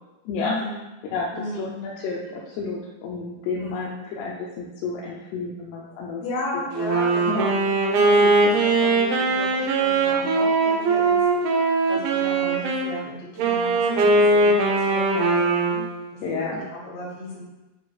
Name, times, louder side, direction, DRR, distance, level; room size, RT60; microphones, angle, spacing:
voice 1, 0.4-0.8 1.3-1.8 3.6-4.0 6.2-11.2 11.9-15.8 16.7-17.4, left 1 dB, 60° left, -4 dB, 3.0 m, -34 dB
voice 2, 1.1-6.2 6.5-6.7 7.3-7.5 8.2-8.5 16.2-16.6, left 4 dB, 80° left, -3 dB, 2.5 m, -31 dB
Wind instrument woodwind instrument, 6.7-12.9 13.4-16.0, right 3 dB, 90° right, 2.0 m, -20 dB
9.5 x 4.1 x 2.4 m, 1.0 s
omnidirectional pair, 5.3 m